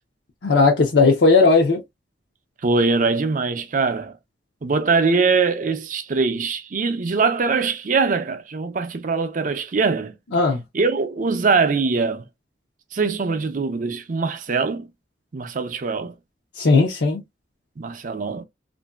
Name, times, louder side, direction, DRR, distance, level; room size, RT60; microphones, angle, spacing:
voice 1, 0.4-1.8 10.3-10.6 16.6-17.2, left 3 dB, 65° left, 0.6 m, -16 dB
voice 2, 2.6-4.1 4.6-10.1 10.7-12.2 12.9-14.9 15.3-16.1 17.8-18.4, right 4 dB, 45° right, 0.5 m, -22 dB
3.0 x 2.6 x 2.3 m
head